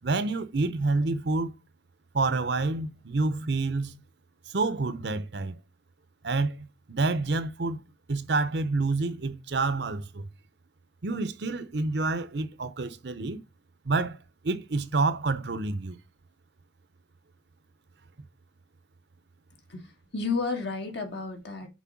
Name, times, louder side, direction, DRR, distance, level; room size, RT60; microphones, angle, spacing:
voice 1, 0.0-1.6 2.1-4.0 4.5-5.6 6.2-7.8 8.1-10.3 11.0-13.4 13.8-14.2 14.4-16.0, right 3 dB, 55° right, 0.7 m, -28 dB
voice 2, 19.7-21.7, left 4 dB, 60° left, 2.0 m, -32 dB
6.1 x 4.4 x 5.8 m
head